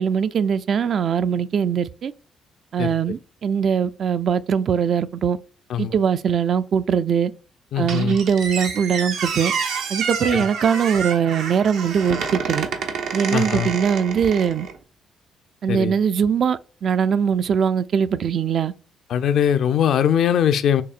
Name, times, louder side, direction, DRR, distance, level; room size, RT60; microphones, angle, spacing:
voice 1, 0.0-2.1 2.7-5.4 5.8-7.3 7.8-9.5 9.9-12.7 13.1-14.7 15.6-18.7, right 7 dB, 55° right, 0.3 m, -21 dB
voice 2, 7.7-8.2 10.3-10.4 13.3-13.7 15.7-15.9 19.1-20.8, left 9 dB, 70° left, 0.4 m, -21 dB
Squeak, 7.9-14.8, right 6 dB, 90° right, 0.8 m, -28 dB
6.7 x 2.8 x 2.4 m
cardioid pair, 90°, 0 cm